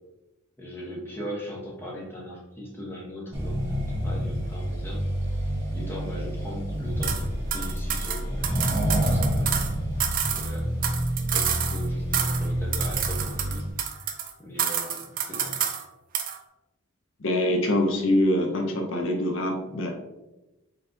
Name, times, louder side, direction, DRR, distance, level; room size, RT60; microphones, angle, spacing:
voice 1, 0.6-5.0 5.7-9.6 10.3-10.9 11.3-13.6 14.4-15.6, equal, 10° left, -4 dB, 0.9 m, -39 dB
Accelerating revving vroom, 3.3-13.7, equal, 10° right, 1.1 m, -28 dB
sound 1, 7.0-7.2 7.5-9.7 10.0-11.9 12.1-12.5 12.7-14.3 14.6-15.8 16.1-16.4, right 9 dB, 40° right, 0.4 m, -29 dB
voice 2, 17.2-19.9, left 1 dB, 60° left, 2 dB, 0.6 m, -24 dB
4.1 x 3.9 x 2.6 m, 1.0 s
head